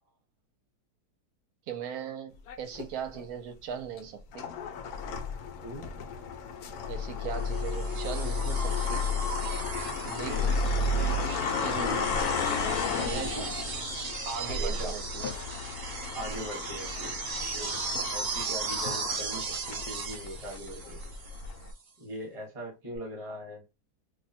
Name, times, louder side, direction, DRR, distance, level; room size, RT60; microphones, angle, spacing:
voice 1, 1.7-4.5 6.9-9.1 10.0-10.6 11.6-12.2 13.0-13.5 14.2-15.3, right 7 dB, 70° right, 1.0 m, -39 dB
sound 1, 2.5-3.2 3.9-21.7, left 4 dB, 75° left, 1.0 m, -33 dB
sound 2, 7.5-21.5 23.0-23.1, right 4 dB, 50° right, 0.8 m, -37 dB
voice 2, 11.5-12.0 13.1-13.5 14.5-14.9 16.1-17.2 17.5-17.7 18.1-21.0 22.0-23.6, equal, 25° right, 1.0 m, -40 dB
sound 3, 15.2-16.6 18.9-19.9, left 5 dB, 55° left, 0.7 m, -47 dB
2.7 x 2.1 x 4.1 m
omnidirectional pair, 1.7 m